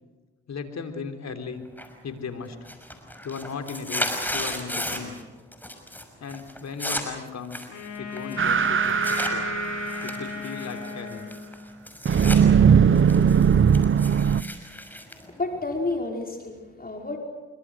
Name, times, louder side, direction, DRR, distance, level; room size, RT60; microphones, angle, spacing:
voice 1, 0.5-1.6 2.0-2.6 3.2-5.2 6.2-7.7 8.0-9.5 10.0-11.3, left 5 dB, 65° left, 6 dB, 3.8 m, -36 dB
sound 1, 1.8-2.2 2.5-5.2 5.5-6.0 6.3-9.3 9.9-12.4 12.8-16.0, left 1 dB, 5° left, 6.0 m, -34 dB
Wind instrument woodwind instrument, 7.7-11.9, left 6 dB, 80° left, 3.8 m, -36 dB
sound 2, 8.4-10.4 12.0-14.4, right 7 dB, 45° right, 0.9 m, -19 dB
voice 2, 15.3-17.2, left 2 dB, 30° left, 1 dB, 5.0 m, -30 dB
26.0 x 24.0 x 6.4 m, 1.3 s
supercardioid pair, 55°, 29 cm